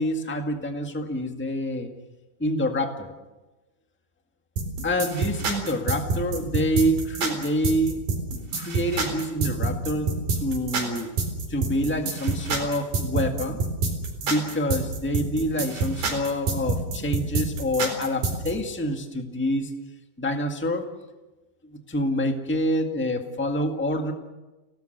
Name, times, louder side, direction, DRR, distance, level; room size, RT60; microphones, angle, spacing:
voice 1, 0.0-1.9 2.4-3.1 4.8-8.0 8.5-10.1 10.4-11.1 11.5-13.6 14.2-19.7 20.2-20.9 21.7-24.1, equal, 10° left, 4 dB, 0.7 m, -27 dB
sound 1, 4.6-18.5, right 3 dB, 80° right, 5.9 m, -27 dB
29.5 x 18.0 x 6.7 m, 1.1 s
omnidirectional pair, 3.8 m